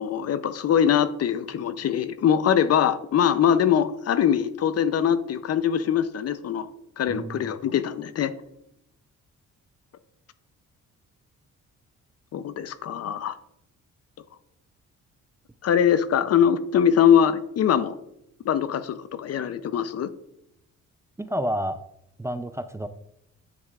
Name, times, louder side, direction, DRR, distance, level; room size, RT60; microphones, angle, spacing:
voice 1, 0.0-6.7 7.0-8.3 12.3-13.3 15.6-18.0 18.4-20.1, left 8 dB, 55° left, 13 dB, 0.6 m, -22 dB
voice 2, 7.1-7.5 21.2-21.8 22.2-22.9, equal, 10° right, 10 dB, 0.4 m, -29 dB
9.7 x 7.3 x 2.4 m, 0.79 s
cardioid pair, 90°, 30 cm